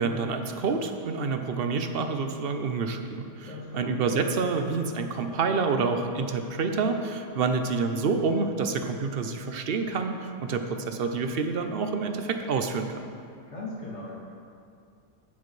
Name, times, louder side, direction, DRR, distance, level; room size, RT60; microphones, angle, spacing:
voice 1, 0.0-13.0, right 4 dB, 55° right, 6 dB, 0.8 m, -28 dB
voice 2, 3.5-3.9 13.5-14.1, left 2 dB, 50° left, -8 dB, 2.8 m, -38 dB
12.0 x 9.4 x 3.2 m, 2.3 s
omnidirectional pair, 1.5 m